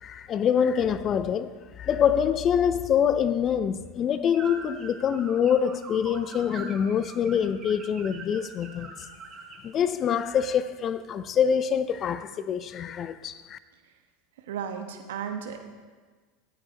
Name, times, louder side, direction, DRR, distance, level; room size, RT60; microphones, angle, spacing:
voice 1, 0.0-9.1 9.6-13.6, left 8 dB, 40° left, 0.5 m, -25 dB
sound 1, 4.3-9.7, right 4 dB, 25° right, 4.0 m, -43 dB
voice 2, 14.5-15.6, right 7 dB, 75° right, 1.3 m, -34 dB
17.5 x 8.8 x 3.0 m
hypercardioid pair, 85°, 0 cm